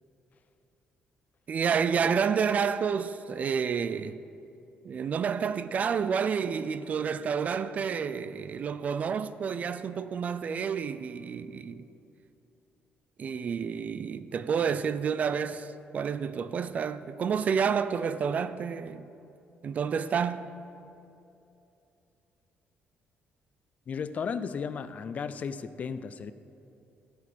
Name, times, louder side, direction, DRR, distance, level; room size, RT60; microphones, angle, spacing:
voice 1, 1.5-4.2 4.8-11.9 13.2-19.1 19.6-20.5, right 6 dB, 40° right, 0.3 m, -29 dB
voice 2, 23.9-26.3, left 6 dB, 40° left, 0.4 m, -34 dB
13.0 x 4.8 x 6.2 m
cardioid pair, 150°, 4 cm